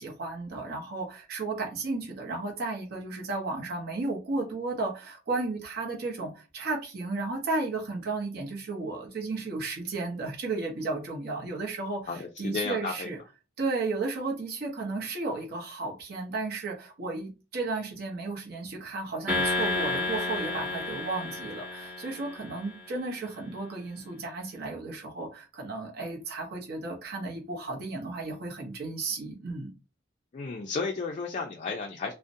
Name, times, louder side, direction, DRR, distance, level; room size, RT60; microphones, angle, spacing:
voice 1, 0.0-13.2 13.6-29.7, right 3 dB, 55° right, 0.7 m, -34 dB
voice 2, 12.1-13.1 30.3-32.1, left 4 dB, 40° left, 0.3 m, -33 dB
sound 1, 19.3-22.8, left 2 dB, 10° right, 0.7 m, -31 dB
2.5 x 2.0 x 2.5 m
head